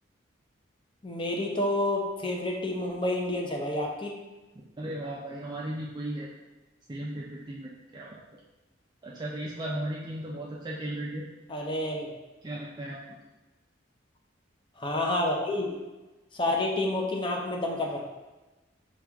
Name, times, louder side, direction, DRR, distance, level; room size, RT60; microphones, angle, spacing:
voice 1, 1.0-4.2 11.5-12.1 14.8-15.7 16.3-18.1, left 1 dB, 25° left, 1 dB, 0.6 m, -29 dB
voice 2, 4.8-6.3 6.9-8.4 9.0-11.2 12.4-13.0, right 1 dB, 20° right, -5 dB, 0.4 m, -36 dB
5.9 x 2.4 x 3.4 m, 1.1 s
head